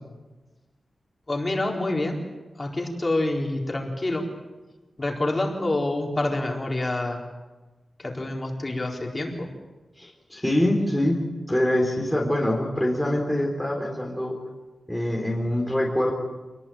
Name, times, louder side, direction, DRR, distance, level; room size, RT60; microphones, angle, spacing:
voice 1, 1.3-2.2 2.6-4.3 5.0-7.2 8.0-9.5, left 2 dB, 25° left, 0 dB, 4.3 m, -27 dB
voice 2, 10.0-11.2 11.5-14.4 14.9-16.1, left 1 dB, 5° left, -2 dB, 3.7 m, -24 dB
27.0 x 20.0 x 9.1 m, 1.2 s
wide cardioid pair, 150°, 0 cm